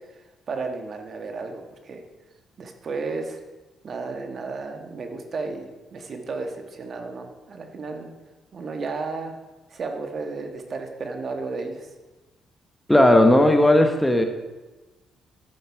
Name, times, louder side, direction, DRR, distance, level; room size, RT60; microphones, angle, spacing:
voice 1, 0.5-2.0 2.6-3.4 3.8-8.1 8.5-9.3 9.7-11.9, right 4 dB, 50° right, 5 dB, 1.4 m, -33 dB
voice 2, 12.9-14.3, left 1 dB, 5° left, 5 dB, 1.1 m, -16 dB
11.0 x 8.0 x 4.8 m, 1.2 s
cardioid pair, 90°, 0 cm